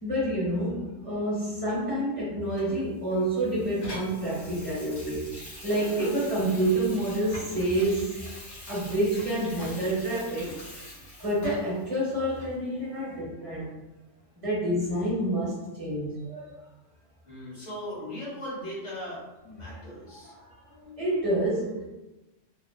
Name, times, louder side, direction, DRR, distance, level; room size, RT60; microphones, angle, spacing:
voice 1, 0.0-5.3 5.6-8.2 8.7-10.6 11.2-13.7 14.4-16.5 19.6-19.9 20.2-20.5 20.8-21.9, right 1 dB, 30° right, -7 dB, 0.9 m, -28 dB
Water tap faucet / Sink (filling or washing), 2.6-11.8 12.4-12.5, left 1 dB, 85° left, 1.1 m, -44 dB
voice 2, 17.2-20.3, equal, 35° left, -8 dB, 1.1 m, -38 dB
2.9 x 2.0 x 2.3 m, 1.0 s
omnidirectional pair, 1.3 m